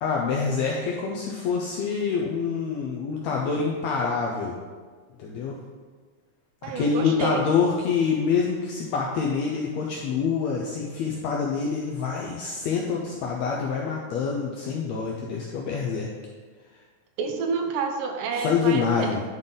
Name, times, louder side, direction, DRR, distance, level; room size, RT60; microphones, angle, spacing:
voice 1, 0.0-4.6 5.2-5.6 6.6-16.1 18.4-19.2, left 5 dB, 80° left, -1 dB, 1.5 m, -26 dB
voice 2, 6.6-7.4 17.2-19.1, right 5 dB, 80° right, 4 dB, 2.4 m, -29 dB
10.5 x 4.0 x 3.7 m, 1.5 s
omnidirectional pair, 3.8 m